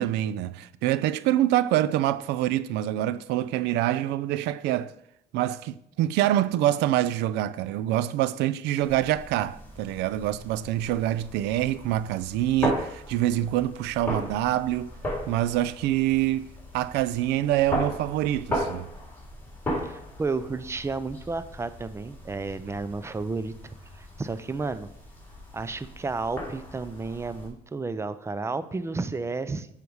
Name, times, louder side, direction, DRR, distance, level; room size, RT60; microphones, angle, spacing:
voice 1, 0.0-4.9 5.3-14.9 15.3-18.9, right 13 dB, 85° right, 0.4 m, -26 dB
sound 1, 8.8-27.5, equal, 10° left, 3.2 m, -37 dB
voice 2, 19.8-24.9 25.5-29.7, right 3 dB, 15° right, 0.5 m, -32 dB
8.2 x 5.1 x 4.7 m
cardioid pair, 110°, 17 cm